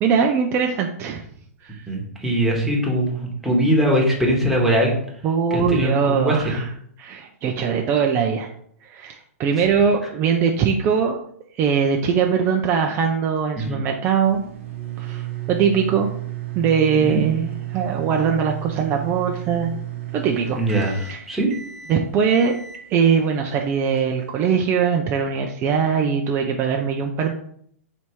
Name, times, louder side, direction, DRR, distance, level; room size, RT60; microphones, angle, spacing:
voice 1, 0.0-1.3 1.6-1.9 5.2-6.7 7.0-8.5 8.8-11.2 11.5-14.4 15.0-16.1 16.6-19.7 20.1-21.4 21.9-22.5 22.9-27.3, right 6 dB, 30° right, 2 dB, 0.4 m, -21 dB
voice 2, 1.9-4.9 5.5-6.6 9.6-9.7 13.6-13.8 17.0-17.2 20.6-21.5, right 1 dB, ahead, -3 dB, 1.2 m, -21 dB
sound 1, 14.2-24.6, right 14 dB, 60° right, 0.8 m, -33 dB
3.3 x 2.8 x 4.5 m, 0.65 s
hypercardioid pair, 125°, 8 cm